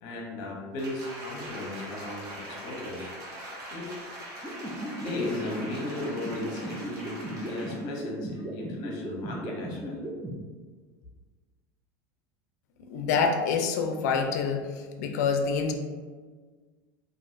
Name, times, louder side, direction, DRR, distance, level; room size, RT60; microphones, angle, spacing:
voice 1, 0.0-3.1 3.7-3.9 5.0-10.0, left 2 dB, 55° left, 0 dB, 0.8 m, -36 dB
Applause, 0.8-7.9 8.3-8.5, right 1 dB, 40° right, 0.9 m, -42 dB
sound 1, 4.4-10.3, right 1 dB, 5° right, 0.4 m, -36 dB
voice 2, 12.8-14.6 15.0-15.7, left 5 dB, 85° left, 4 dB, 0.4 m, -26 dB
3.0 x 2.5 x 2.6 m, 1.5 s
supercardioid pair, 135°, 9 cm